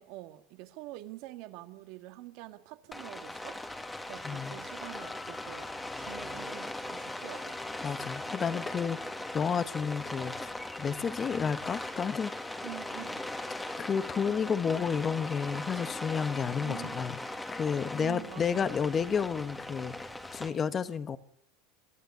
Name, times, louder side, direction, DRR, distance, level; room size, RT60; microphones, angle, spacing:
voice 1, 0.0-3.6 4.1-5.7 6.0-7.6 12.6-13.3 16.6-17.0 18.0-18.7, right 17 dB, 65° right, 1.8 m, -46 dB
Rain, 2.9-20.5, left 2 dB, 10° left, 2.0 m, -39 dB
voice 2, 4.2-4.6 7.8-10.3 10.8-12.5 13.8-17.2 17.5-21.2, left 6 dB, 25° left, 1.2 m, -31 dB
Keyboard (musical), 4.8-7.2, left 7 dB, 75° left, 5.8 m, -54 dB
23.5 x 13.5 x 9.7 m
supercardioid pair, 130°, 0 cm